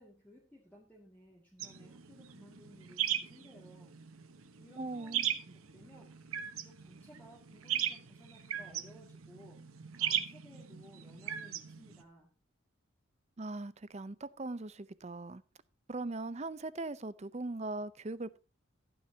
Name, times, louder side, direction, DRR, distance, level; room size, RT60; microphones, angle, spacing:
voice 1, 0.0-4.0 4.6-12.3, equal, 10° left, 2.1 m, -58 dB
sound 1, 1.6-12.0, right 10 dB, 85° right, 1.0 m, -38 dB
voice 2, 4.8-5.3 13.4-15.4 15.9-18.4, right 2 dB, 30° right, 0.6 m, -40 dB
15.0 x 9.5 x 2.8 m
head